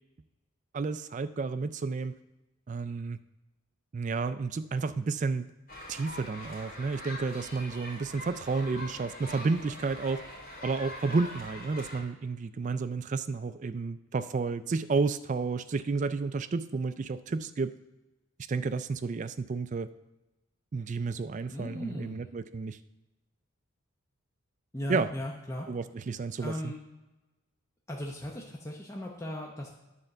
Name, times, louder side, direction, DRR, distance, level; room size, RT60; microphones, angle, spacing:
voice 1, 0.7-2.1 2.7-3.2 3.9-5.5 5.9-10.2 10.6-17.7 18.5-19.9 20.7-22.8 24.9-25.1 25.7-26.7, right 4 dB, 35° right, 13 dB, 0.3 m, -31 dB
sound 1, 5.7-12.0, left 1 dB, 40° left, 2.6 m, -43 dB
voice 2, 21.5-22.3 24.7-25.7 26.4-26.8 27.9-29.7, left 1 dB, 15° left, -1 dB, 0.7 m, -37 dB
9.8 x 4.5 x 6.5 m, 1.0 s
head